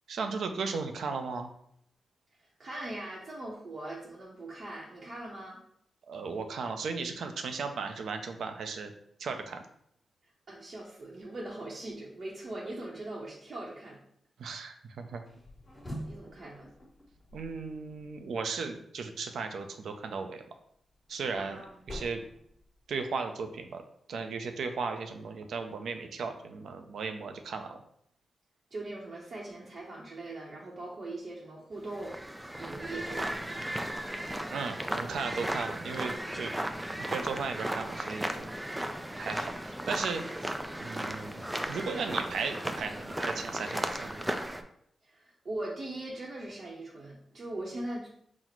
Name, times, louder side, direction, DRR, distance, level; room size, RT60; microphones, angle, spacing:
voice 1, 0.1-1.5 6.1-8.9 9.2-9.6 14.4-15.2 17.3-20.4 21.1-21.6 21.9-22.2 22.9-23.8 24.1-27.8 34.5-36.6 37.1-38.5 39.2-40.5 40.8-41.4 41.7-44.2, right 4 dB, 85° right, 6 dB, 0.4 m, -36 dB
voice 2, 2.4-5.6 10.5-14.0 16.1-16.7 21.4-21.7 28.7-32.2 32.5-33.7 45.0-48.1, right 2 dB, 50° right, -5 dB, 0.7 m, -41 dB
sound 1, 15.3-18.4 20.6-23.2, equal, 20° left, 1.2 m, -46 dB
sound 2, 31.9-44.6, right 1 dB, 10° right, 0.3 m, -35 dB
4.0 x 2.0 x 4.4 m, 0.69 s
cardioid pair, 100°, 0 cm